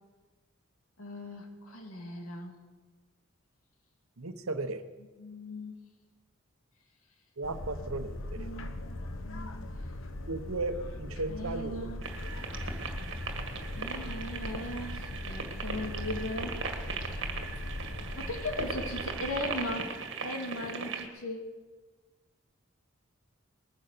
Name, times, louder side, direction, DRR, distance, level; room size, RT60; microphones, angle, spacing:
voice 1, 1.0-2.6 5.2-5.8 8.4-9.0 9.2-10.0 11.3-12.0 13.7-16.6 17.0-17.2 18.2-19.9 20.2-21.4, left 1 dB, 90° left, 2 dB, 2.8 m, -38 dB
voice 2, 4.2-4.8 7.4-8.5 10.3-11.9, right 2 dB, 80° right, 10 dB, 1.1 m, -35 dB
sound 1, 7.4-19.8, left 1 dB, 70° left, 1.3 m, -40 dB
sound 2, 12.0-21.1, right 5 dB, 60° right, 1.9 m, -39 dB
20.0 x 10.0 x 6.8 m, 1.3 s
head